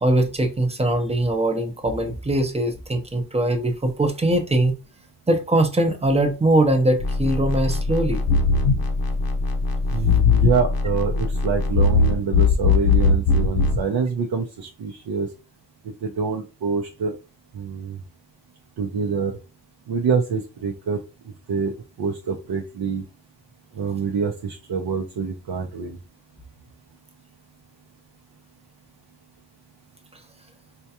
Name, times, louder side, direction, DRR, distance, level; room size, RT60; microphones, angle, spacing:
voice 1, 0.0-4.8 5.3-8.2, right 1 dB, 15° right, 0.6 m, -21 dB
sound 1, 7.0-13.8, left 4 dB, 65° left, 0.6 m, -20 dB
voice 2, 9.9-15.3 16.0-17.2 17.5-18.0 18.8-19.3 19.9-21.0 21.5-23.0 23.8-26.0, right 5 dB, 70° right, 0.6 m, -26 dB
4.4 x 2.3 x 2.8 m
wide cardioid pair, 125°, 39 cm